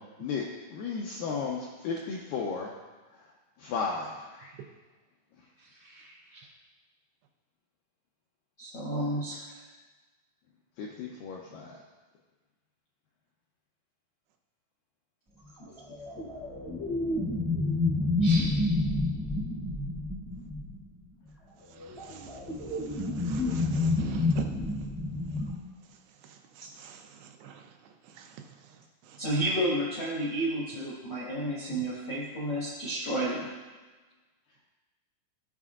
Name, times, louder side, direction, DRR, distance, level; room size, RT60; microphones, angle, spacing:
voice 1, 0.2-2.7 3.6-4.5 10.8-11.8, left 5 dB, 90° left, -2 dB, 2.0 m, -34 dB
voice 2, 5.8-6.4 8.6-9.5 15.6-15.7 18.2-18.5 29.2-33.5, right 1 dB, 65° left, -8 dB, 1.1 m, -31 dB
sound 1, 15.7-20.9 21.8-25.6, left 2 dB, ahead, 0.5 m, -29 dB
voice 3, 21.8-22.4 22.9-24.5 26.6-27.7 28.2-28.3 29.1-29.2, right 7 dB, 85° right, 5 dB, 2.8 m, -44 dB
15.5 x 5.2 x 2.4 m, 1.3 s
omnidirectional pair, 4.8 m